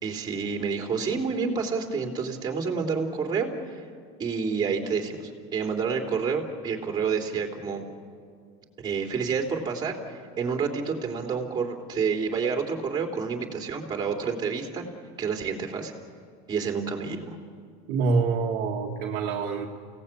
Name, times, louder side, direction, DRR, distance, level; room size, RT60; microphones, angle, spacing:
voice 1, 0.0-3.8 4.2-7.8 8.8-14.8 15.2-15.9 16.5-17.4, right 5 dB, 25° right, 2 dB, 3.3 m, -29 dB
voice 2, 17.9-19.7, right 4 dB, 55° right, 0 dB, 1.8 m, -26 dB
30.0 x 17.5 x 8.5 m, 2.1 s
cardioid pair, 140°, 18 cm